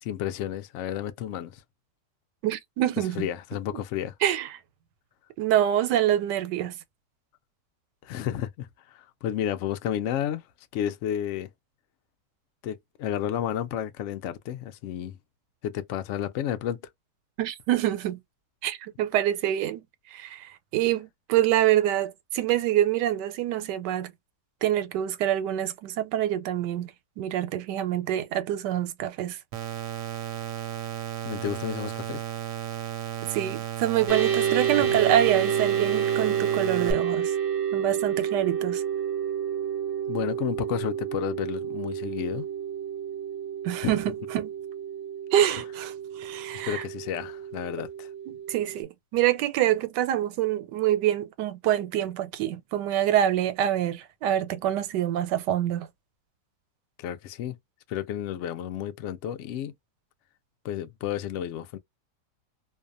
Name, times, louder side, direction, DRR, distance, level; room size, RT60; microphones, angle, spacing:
voice 1, 0.0-1.6 3.2-4.1 8.0-10.4 10.7-11.5 12.6-15.2 15.6-16.8 31.2-32.2 34.9-35.0 40.1-42.5 43.8-43.9 46.6-48.1 57.0-57.6 57.9-59.7 60.6-61.8, left 10 dB, 75° left, 0.6 m, -31 dB
voice 2, 2.4-3.3 4.2-4.5 5.4-6.7 17.4-18.2 18.6-19.8 20.1-24.1 24.6-26.9 27.2-29.4 33.3-37.3 37.7-38.8 43.6-44.5 45.3-46.8 48.3-55.9, right 12 dB, 85° right, 1.2 m, -26 dB
sound 1, 29.5-36.9, right 10 dB, 65° right, 0.9 m, -34 dB
sound 2, 34.1-48.8, right 8 dB, 20° right, 0.7 m, -29 dB
2.7 x 2.1 x 2.4 m
omnidirectional pair, 1.8 m